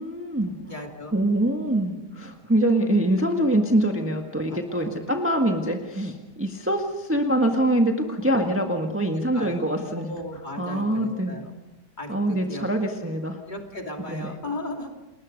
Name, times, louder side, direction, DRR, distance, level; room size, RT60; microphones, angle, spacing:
voice 1, 0.0-0.6 1.1-10.1 10.6-11.4 12.1-13.4 14.0-14.3, right 1 dB, 10° right, 2 dB, 1.5 m, -24 dB
voice 2, 0.6-1.2 4.5-5.0 8.3-8.7 9.1-9.5 9.9-11.5 12.0-12.7 13.5-15.0, left 2 dB, 25° left, 2 dB, 2.9 m, -36 dB
29.5 x 21.0 x 5.3 m, 1.0 s
omnidirectional pair, 1.8 m